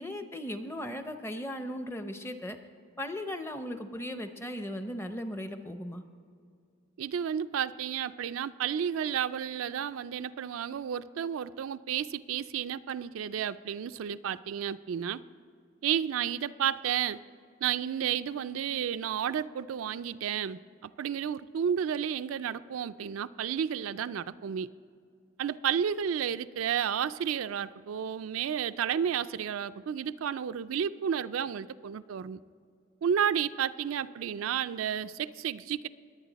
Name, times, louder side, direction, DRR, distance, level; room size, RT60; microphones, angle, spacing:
voice 1, 0.0-2.6 3.0-6.0, left 1 dB, 10° left, 8 dB, 0.6 m, -37 dB
voice 2, 7.0-15.2 15.8-17.2 17.6-24.7 25.4-32.4 33.0-35.9, right 8 dB, 75° right, 12 dB, 0.3 m, -32 dB
21.0 x 8.8 x 4.0 m, 2.3 s
head